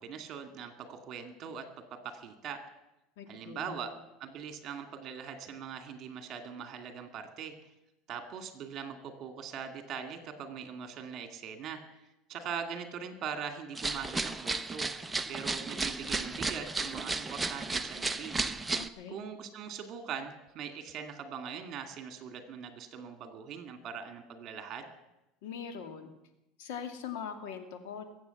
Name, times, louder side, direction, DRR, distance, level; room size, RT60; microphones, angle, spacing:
voice 1, 0.0-2.6 3.3-3.9 4.2-7.5 8.1-11.8 12.3-14.9 15.3-18.3 19.1-24.9, right 7 dB, 45° right, 7 dB, 2.3 m, -41 dB
voice 2, 3.2-3.9 18.8-19.2 25.4-26.1 26.6-28.0, left 7 dB, 80° left, 6 dB, 2.3 m, -42 dB
sound 1, 13.7-18.9, right 3 dB, 10° right, 0.7 m, -34 dB
22.0 x 8.5 x 7.1 m, 0.93 s
supercardioid pair, 135°, 0 cm